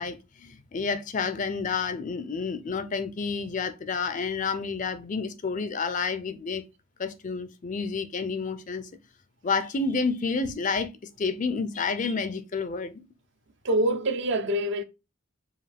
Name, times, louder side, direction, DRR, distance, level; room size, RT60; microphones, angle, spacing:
voice 1, 0.0-6.6 7.0-8.9 9.4-10.9 11.2-13.0, left 4 dB, 35° left, 0.4 m, -30 dB
voice 2, 13.6-14.8, right 1 dB, 55° right, 0.6 m, -25 dB
4.7 x 2.6 x 3.3 m
head